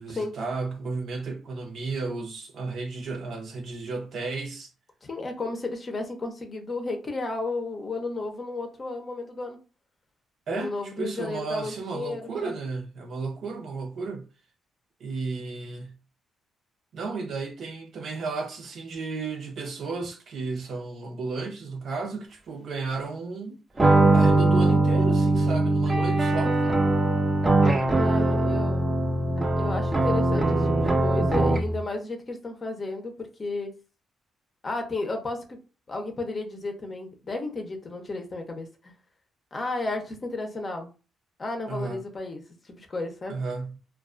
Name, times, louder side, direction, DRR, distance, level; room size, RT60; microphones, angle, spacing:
voice 1, 0.0-4.7 10.5-14.3 15.0-16.0 16.9-23.6 24.1-26.6 41.7-42.0 43.3-43.8, right 4 dB, 60° right, 0.6 m, -33 dB
voice 2, 5.0-9.6 10.5-12.6 25.9-26.0 26.6-26.7 27.8-28.9 29.6-33.7 34.6-35.6 35.9-38.9 39.5-40.9 41.4-43.3, left 3 dB, 35° left, 0.6 m, -33 dB
sound 1, 23.8-31.8, right 2 dB, 25° right, 0.6 m, -21 dB
2.3 x 2.2 x 2.4 m
cardioid pair, 90°, 0 cm